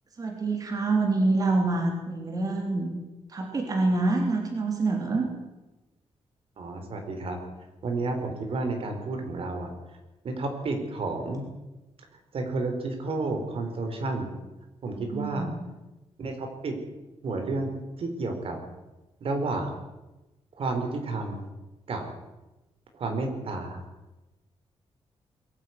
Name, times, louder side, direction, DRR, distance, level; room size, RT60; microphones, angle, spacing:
voice 1, 0.2-2.9 3.3-5.3 15.0-15.6, right 3 dB, 35° right, 2 dB, 3.6 m, -26 dB
voice 2, 6.6-7.4 7.8-9.7 10.2-11.4 12.3-14.3 14.8-15.5 16.2-16.7 17.2-18.6 19.2-19.7 20.6-21.4 21.9-22.0 23.0-23.8, right 3 dB, 60° right, 4 dB, 4.5 m, -31 dB
22.5 x 15.0 x 9.6 m, 1.1 s
wide cardioid pair, 170°, 11 cm